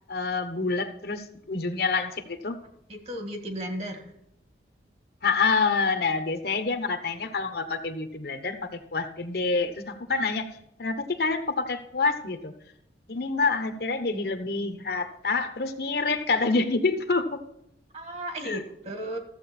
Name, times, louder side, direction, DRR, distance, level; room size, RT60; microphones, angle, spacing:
voice 1, 0.1-2.6 5.2-10.5 10.8-12.5 13.1-17.4 18.4-18.6, left 4 dB, 60° left, 8 dB, 1.0 m, -27 dB
voice 2, 2.9-4.1 17.9-19.2, right 1 dB, 35° right, 5 dB, 1.6 m, -35 dB
13.5 x 7.6 x 4.3 m, 0.76 s
head